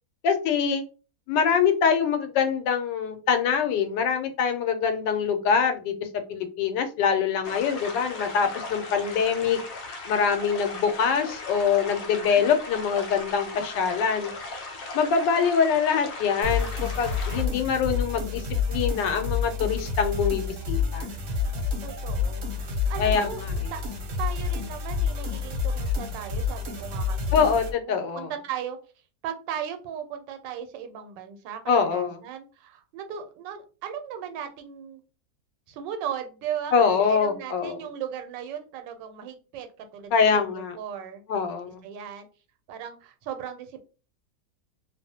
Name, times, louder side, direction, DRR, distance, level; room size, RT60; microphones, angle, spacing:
voice 1, 0.2-0.8 1.3-9.6 10.1-14.3 14.9-21.1 23.0-23.5 27.3-28.3 31.7-32.2 36.7-37.8 40.1-40.8 41.3-41.8, left 6 dB, 85° left, 7 dB, 1.2 m, -24 dB
sound 1, 7.4-17.4, left 3 dB, 70° left, 0.9 m, -38 dB
sound 2, 16.4-27.7, left 5 dB, 60° right, 0.8 m, -29 dB
voice 2, 21.8-23.4 23.7-23.8 24.2-27.5 27.9-28.8 29.2-35.0 35.7-41.2 41.8-42.3 42.7-43.8, right 9 dB, 90° right, 7 dB, 1.2 m, -37 dB
2.8 x 2.0 x 2.7 m, 0.35 s
omnidirectional pair, 1.9 m